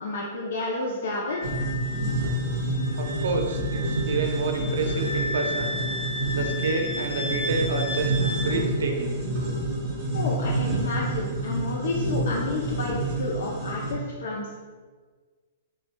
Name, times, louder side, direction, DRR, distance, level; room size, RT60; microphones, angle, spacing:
voice 1, 0.0-1.5 10.1-14.5, left 2 dB, 75° left, -3 dB, 0.6 m, -30 dB
Wind instrument woodwind instrument, 1.2-8.5, left 1 dB, 5° left, 1.0 m, -34 dB
sound 1, 1.4-13.9, right 1 dB, 20° right, 1.0 m, -28 dB
voice 2, 3.0-5.8 6.3-9.2, right 4 dB, 80° right, 3 dB, 0.6 m, -29 dB
6.8 x 2.3 x 2.3 m, 1.5 s
hypercardioid pair, 165°, 0 cm